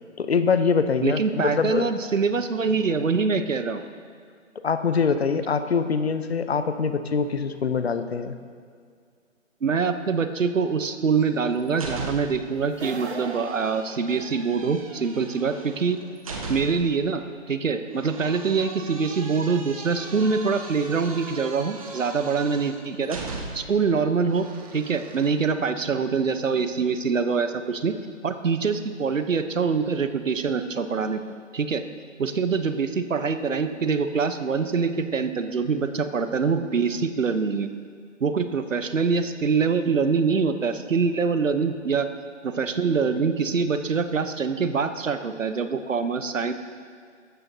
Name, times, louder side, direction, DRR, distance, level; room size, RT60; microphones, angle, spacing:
voice 1, 0.2-1.9 4.6-8.4, left 5 dB, 55° left, 10 dB, 0.7 m, -24 dB
voice 2, 1.0-3.8 9.6-16.0 16.5-23.2 23.5-24.4 24.7-28.0 28.2-31.2 31.5-31.8 32.2-37.7 38.2-42.1 42.4-46.5, right 5 dB, 80° right, 10 dB, 0.9 m, -24 dB
sound 1, 11.2-12.5 12.8-17.0 18.0-23.8 24.3-25.3, right 3 dB, 25° right, 0.9 m, -39 dB
sound 2, 12.7-14.7, right 4 dB, 55° right, 1.1 m, -37 dB
15.0 x 12.5 x 2.8 m, 2.1 s
figure-of-eight pair, 155°, 38 cm